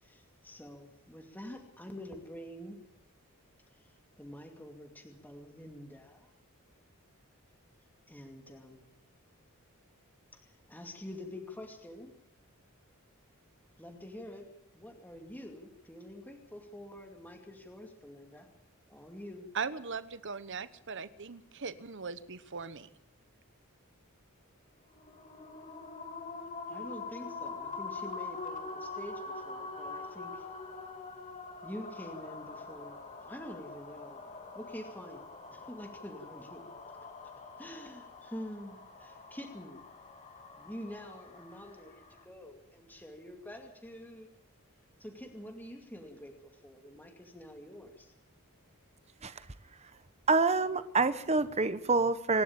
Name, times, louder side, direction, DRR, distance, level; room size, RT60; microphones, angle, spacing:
voice 1, 0.0-2.8 3.7-6.3 8.1-8.8 10.3-12.1 13.8-14.4 14.7-18.5 18.9-19.5 26.7-30.5 31.6-34.2 34.5-35.2 35.5-36.6 37.6-39.8 40.5-44.3 45.0-48.1, left 1 dB, 10° left, 3 dB, 2.4 m, -47 dB
voice 2, 19.5-22.9, right 5 dB, 55° right, 14 dB, 1.1 m, -39 dB
sound 1, 24.9-42.2, left 3 dB, 35° left, 2.4 m, -44 dB
voice 3, 50.3-52.4, right 3 dB, 30° right, 12 dB, 1.1 m, -27 dB
26.0 x 12.0 x 8.8 m, 0.80 s
head